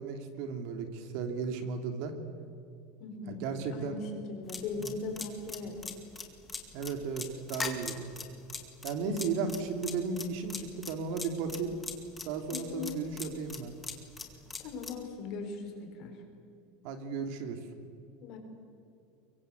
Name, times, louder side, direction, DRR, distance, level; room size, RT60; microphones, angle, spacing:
voice 1, 0.0-2.1 3.3-4.0 4.8-4.9 6.7-8.1 8.8-11.8 12.2-13.7 16.8-17.6, right 5 dB, 55° right, 7 dB, 2.8 m, -35 dB
voice 2, 3.0-5.9 9.0-9.3 12.5-13.0 14.6-16.1 18.2-18.4, left 3 dB, 40° left, 4 dB, 4.8 m, -39 dB
sound 1, 4.5-15.0, left 4 dB, 10° left, 2.2 m, -40 dB
24.0 x 23.5 x 8.1 m, 2.5 s
supercardioid pair, 170°, 0 cm